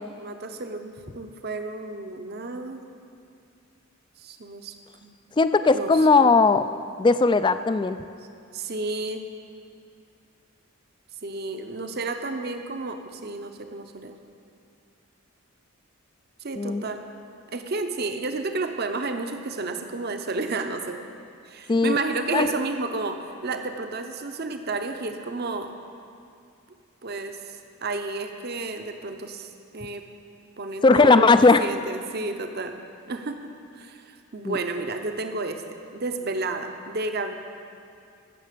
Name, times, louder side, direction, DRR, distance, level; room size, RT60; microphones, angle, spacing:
voice 1, 0.2-2.8 4.2-4.7 5.0-5.1 5.7-5.9 8.5-9.2 11.2-14.2 16.4-17.0 17.5-21.0 21.5-25.7 27.0-30.0 30.6-32.7 33.1-33.4 33.7-35.6 35.9-37.4, right 3 dB, 50° right, 7 dB, 0.8 m, -31 dB
voice 2, 5.4-6.7 7.0-8.0 16.6-16.8 21.7-22.0 22.3-22.5 30.8-31.6 34.4-34.6, left 3 dB, 20° left, 12 dB, 0.3 m, -18 dB
15.5 x 6.6 x 6.8 m, 2.4 s
head